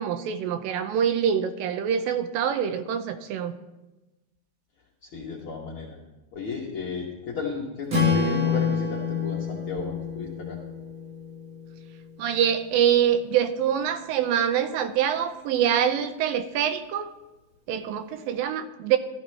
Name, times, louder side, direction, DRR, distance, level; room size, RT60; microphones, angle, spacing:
voice 1, 0.0-3.5 12.2-17.1 17.7-19.0, right 9 dB, 80° right, 10 dB, 2.3 m, -25 dB
voice 2, 5.0-6.0 6.3-10.6, left 5 dB, 75° left, -3 dB, 1.2 m, -34 dB
Strum, 7.9-12.2, left 5 dB, 45° right, 1.1 m, -27 dB
13.5 x 13.5 x 3.2 m, 1.1 s
omnidirectional pair, 4.2 m